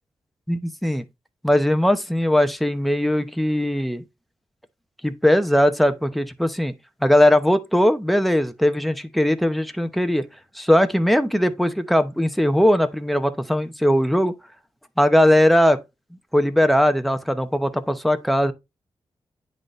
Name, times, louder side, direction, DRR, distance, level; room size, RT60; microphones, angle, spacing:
voice 1, 0.5-1.0 1.4-4.0 5.0-6.7 7.0-10.3 10.5-14.3 15.0-15.8 16.3-18.5, left 1 dB, ahead, 0.8 m, -19 dB
9.7 x 4.0 x 3.2 m
wide cardioid pair, 90°, 11 cm